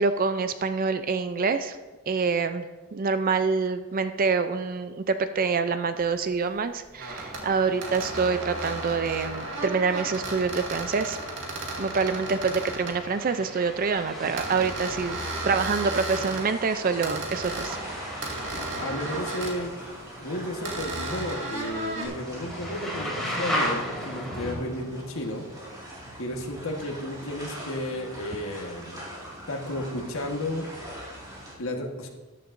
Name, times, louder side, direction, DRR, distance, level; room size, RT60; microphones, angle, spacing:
voice 1, 0.0-1.8 2.1-2.6 2.9-11.2 11.8-15.2 15.5-17.8, right 4 dB, 40° right, 10 dB, 0.4 m, -26 dB
sound 1, 6.1-6.2 7.0-7.4 7.8-13.0 14.4-16.5 17.0-17.8 18.2-19.6 20.6-22.1, right 2 dB, 55° right, 2.1 m, -34 dB
sound 2, 7.0-24.5, equal, ahead, 2.8 m, -37 dB
sound 3, 15.0-31.5, right 1 dB, 15° right, 3.5 m, -42 dB
voice 2, 18.8-19.7 20.2-25.4 26.2-29.1 29.5-30.7 31.6-32.1, left 1 dB, 65° left, 1 dB, 1.4 m, -33 dB
13.5 x 11.0 x 2.6 m, 1.2 s
head